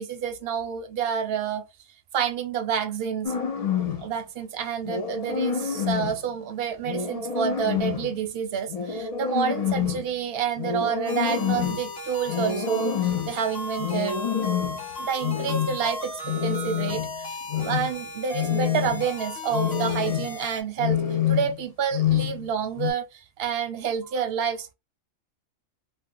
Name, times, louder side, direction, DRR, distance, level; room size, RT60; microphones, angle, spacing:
voice 1, 0.0-1.6 2.1-3.4 4.0-12.9 13.3-14.2 15.0-21.0 21.3-24.7, right 8 dB, 60° right, 0.6 m, -29 dB
sound 1, 3.2-4.1 4.9-6.2 6.8-8.1 8.7-10.1 10.6-11.9 12.3-13.3 13.8-14.8 15.2-15.8 16.2-17.2 17.5-17.9 18.3-19.1 19.5-20.4 20.8-21.6 21.9-22.5 22.8-22.9, left 8 dB, 80° left, 0.3 m, -27 dB
sound 2, 11.0-20.6, left 2 dB, 50° left, 1.2 m, -36 dB
2.7 x 2.0 x 3.6 m
omnidirectional pair, 1.3 m